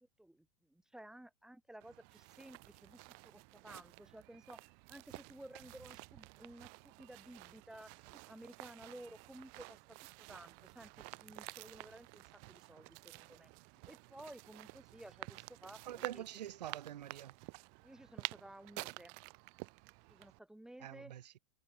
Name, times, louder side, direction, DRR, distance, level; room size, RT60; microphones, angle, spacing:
voice 1, 0.2-3.0 3.2-13.5 13.9-16.2 17.8-19.1 20.1-21.1, right 1 dB, 5° right, 3.9 m, -55 dB
sound 1, 1.8-20.4, right 40 dB or more, 50° right, 3.8 m, -51 dB
voice 2, 15.9-17.3 20.8-21.4, right 11 dB, 85° right, 5.0 m, -45 dB
supercardioid pair, 135°, 21 cm